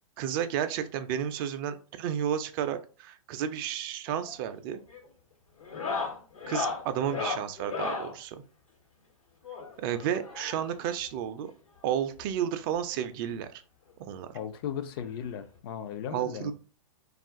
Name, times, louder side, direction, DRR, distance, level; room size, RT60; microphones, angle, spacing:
voice 1, 0.2-4.8 6.5-8.4 9.8-11.5 11.8-13.6 14.0-14.4 16.1-16.5, right 9 dB, 40° right, 0.4 m, -32 dB
sound 1, 4.1-4.4 4.7-5.1 5.6-8.1 9.4-10.8 11.9-12.0 12.2-12.3 12.8-12.9 14.1-14.2 15.6-15.7, left 4 dB, 80° left, 1.1 m, -35 dB
voice 2, 14.3-16.5, left 8 dB, 45° left, 0.5 m, -36 dB
2.4 x 2.4 x 3.5 m
hypercardioid pair, 115°, 18 cm